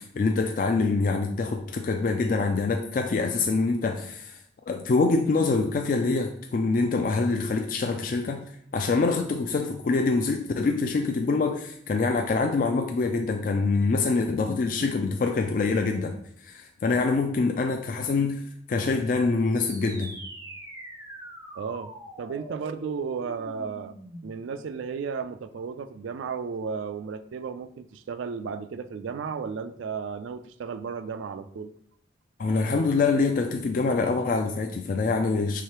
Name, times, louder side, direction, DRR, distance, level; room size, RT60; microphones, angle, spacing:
voice 1, 0.0-4.4 4.7-8.4 8.7-16.2 16.4-18.4 18.7-20.1 32.4-35.6, left 3 dB, 45° left, 4 dB, 0.3 m, -25 dB
sound 1, 19.5-24.5, right 1 dB, 15° right, 0.5 m, -43 dB
voice 2, 21.6-21.9 22.2-23.9 24.2-31.7, right 6 dB, 80° right, 11 dB, 0.3 m, -34 dB
4.8 x 3.6 x 2.9 m, 0.67 s
head